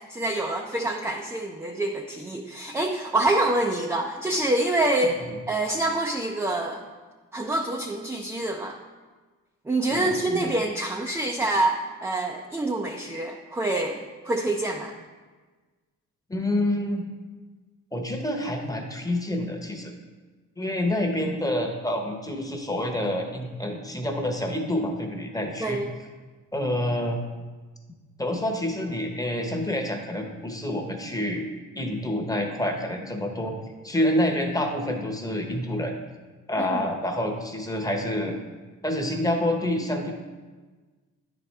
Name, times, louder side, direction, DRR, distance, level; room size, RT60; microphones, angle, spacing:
voice 1, 0.1-5.2 5.5-6.8 7.3-8.8 9.7-14.9 25.6-25.9 36.6-36.8, right 2 dB, 10° right, 1 dB, 0.4 m, -26 dB
voice 2, 9.9-10.5 16.3-17.1 17.9-19.9 20.6-25.8 26.5-27.2 28.2-31.4 31.7-33.5 33.8-35.9 36.5-38.4 38.8-40.1, left 1 dB, 10° left, 2 dB, 0.9 m, -27 dB
9.7 x 4.3 x 3.3 m, 1.3 s
cardioid pair, 90°, 30 cm